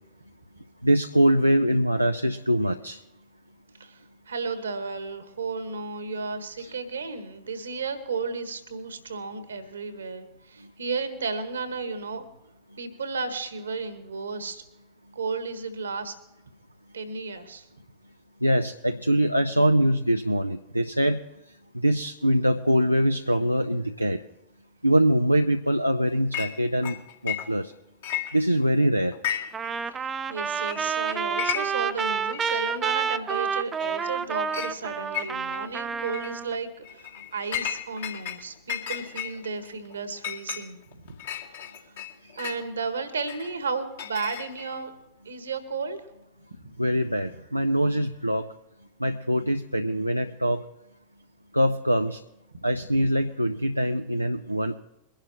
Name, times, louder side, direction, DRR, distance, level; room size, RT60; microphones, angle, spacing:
voice 1, 0.8-3.0 6.6-6.7 18.4-21.2 21.7-24.2 24.8-27.0 27.2-27.7 28.3-29.1 42.2-42.4 46.8-48.5 49.0-50.6 51.5-52.2 52.6-54.8, equal, 90° right, 6 dB, 0.5 m, -23 dB
voice 2, 4.3-12.2 12.8-14.6 15.1-16.1 16.9-17.7 29.9-41.1 42.3-44.9 45.2-46.0, right 4 dB, 70° right, 10 dB, 1.6 m, -33 dB
Chink clink, 26.3-26.5 26.8-27.7 28.0-28.7 29.1-29.7 30.0-30.1 30.7-30.8 31.1-31.9 32.3-32.4 33.3-33.4 33.8-34.2 34.5-34.7 35.1-35.6 36.0-36.3 36.8-38.4 38.7-42.6 43.3-44.8, left 10 dB, 60° left, 1.9 m, -34 dB
Trumpet, 29.5-36.6, right 6 dB, 20° right, 0.6 m, -29 dB
23.0 x 11.5 x 3.0 m, 0.91 s
figure-of-eight pair, 90°, 0 cm